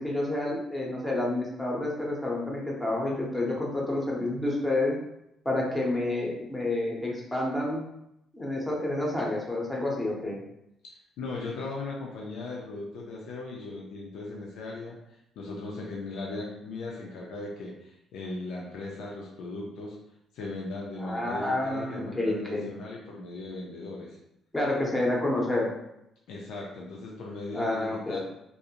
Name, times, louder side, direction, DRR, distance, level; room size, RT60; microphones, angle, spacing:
voice 1, 0.0-4.9 5.4-7.8 8.3-10.4 21.0-22.7 24.5-25.7 27.5-28.2, left 2 dB, 10° left, -3 dB, 0.6 m, -29 dB
voice 2, 10.8-15.0 15.4-20.0 20.3-24.2 26.3-28.2, left 2 dB, 85° left, -2 dB, 0.4 m, -38 dB
2.5 x 2.0 x 2.8 m, 0.82 s
cardioid pair, 120°, 0 cm